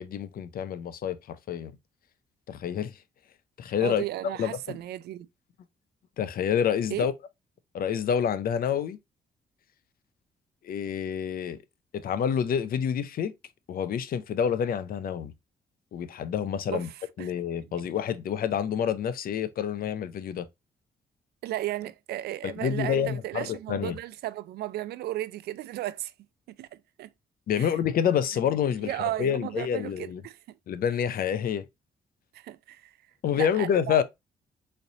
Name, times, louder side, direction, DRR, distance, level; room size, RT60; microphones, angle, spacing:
voice 1, 0.0-1.7 2.5-3.0 3.6-4.0 4.4-4.8 6.2-7.1 7.7-9.0 10.6-11.6 11.9-13.3 13.7-15.3 15.9-16.9 17.2-20.5 22.4-24.0 27.5-30.2 30.7-31.6 33.2-34.0, left 8 dB, 65° left, 0.5 m, -28 dB
voice 2, 3.8-5.3 6.9-7.1 16.7-17.3 21.4-26.1 26.6-27.1 27.5-27.8 28.8-30.6 32.3-33.0 33.3-34.0, right 14 dB, 75° right, 0.4 m, -35 dB
3.9 x 3.2 x 2.6 m
cardioid pair, 70°, 17 cm